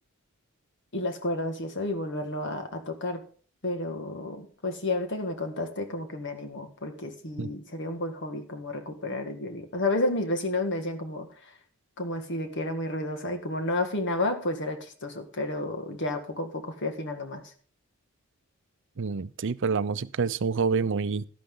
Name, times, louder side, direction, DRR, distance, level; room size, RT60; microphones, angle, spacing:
voice 1, 0.9-3.2 3.6-11.3 12.0-17.4, left 2 dB, 55° left, 6 dB, 1.8 m, -31 dB
voice 2, 19.0-21.3, right 5 dB, 60° right, 15 dB, 0.6 m, -27 dB
12.5 x 12.0 x 3.8 m, 0.43 s
head